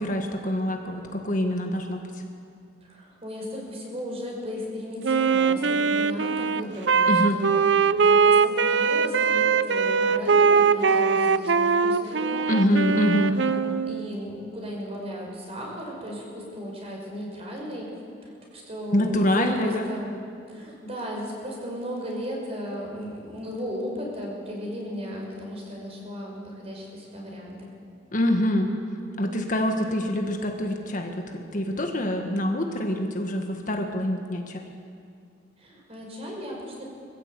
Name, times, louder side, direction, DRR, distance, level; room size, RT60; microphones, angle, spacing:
voice 1, 0.0-2.0 7.1-7.4 12.5-13.4 18.9-19.9 28.1-28.7 29.2-34.7, equal, 45° left, 3 dB, 1.7 m, -25 dB
voice 2, 2.8-12.7 13.2-13.6 13.9-17.9 18.2-20.1 20.5-27.7 35.6-36.9, equal, 35° right, -1 dB, 5.4 m, -35 dB
Wind instrument woodwind instrument, 5.0-14.0, right 5 dB, 70° right, 0.6 m, -21 dB
23.0 x 15.0 x 8.3 m, 2.4 s
head